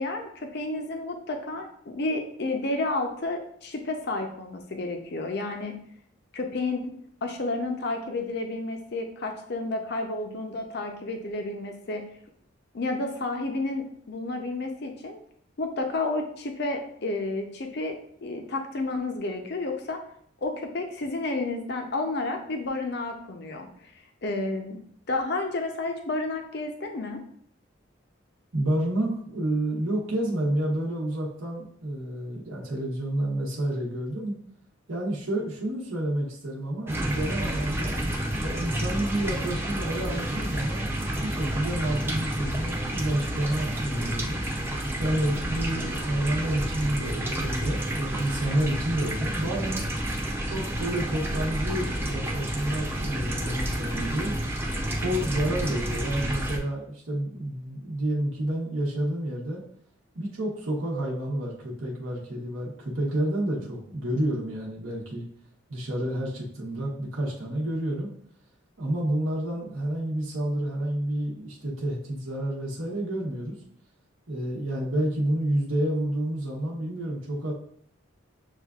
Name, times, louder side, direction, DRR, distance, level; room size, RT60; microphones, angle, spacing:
voice 1, 0.0-5.8 6.3-7.0 7.2-12.0 12.7-15.2 15.6-17.9 18.2-20.0 20.4-23.7 24.2-24.8 25.1-27.2, left 2 dB, 55° left, 4 dB, 0.6 m, -31 dB
voice 2, 28.5-34.3 34.9-37.9 38.4-44.4 45.0-49.8 50.4-54.3 55.0-59.6 60.1-65.2 65.7-68.1 68.8-73.6 74.3-77.5, right 1 dB, 80° right, -4 dB, 1.0 m, -29 dB
sound 1, 36.9-56.6, right 1 dB, 10° right, 0.4 m, -30 dB
7.1 x 2.4 x 2.3 m, 0.63 s
head